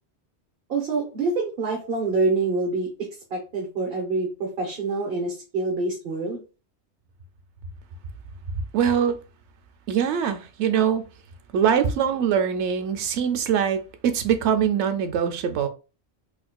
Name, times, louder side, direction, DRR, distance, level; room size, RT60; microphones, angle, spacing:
voice 1, 0.7-2.9 3.3-6.4, right 3 dB, 55° right, 1.0 m, -26 dB
voice 2, 8.7-9.2 9.9-11.0 11.5-15.7, right 8 dB, 80° right, 0.9 m, -23 dB
4.1 x 2.5 x 2.2 m
omnidirectional pair, 1.2 m